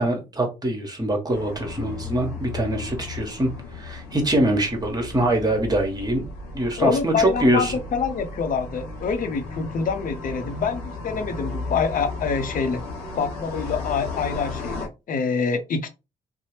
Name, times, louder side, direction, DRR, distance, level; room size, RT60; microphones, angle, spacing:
voice 1, 0.0-6.2 6.5-7.8, right 1 dB, 20° right, 1.2 m, -24 dB
sound 1, 1.3-14.9, left 3 dB, 85° left, 0.8 m, -35 dB
voice 2, 6.8-12.8 13.2-15.9, left 5 dB, 50° left, 0.6 m, -26 dB
2.7 x 2.0 x 3.1 m
hypercardioid pair, 45°, 17 cm